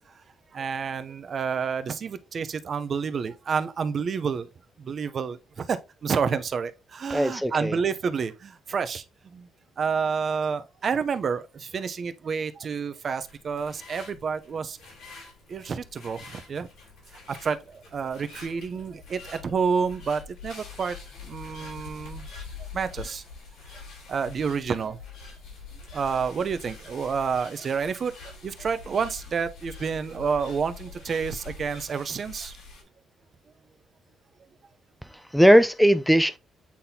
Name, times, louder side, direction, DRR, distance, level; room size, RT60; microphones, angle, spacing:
voice 1, 0.5-4.5 4.8-9.0 9.3-9.5 9.8-14.8 15.5-16.7 17.3-22.3 22.6-23.2 24.1-25.0 25.9-32.5, right 6 dB, 50° right, 0.7 m, -29 dB
voice 2, 7.1-7.8 35.3-36.4, equal, ahead, 0.5 m, -19 dB
sound 1, 13.1-32.8, left 4 dB, 85° left, 3.7 m, -45 dB
8.5 x 3.9 x 2.8 m
cardioid pair, 90°, 0 cm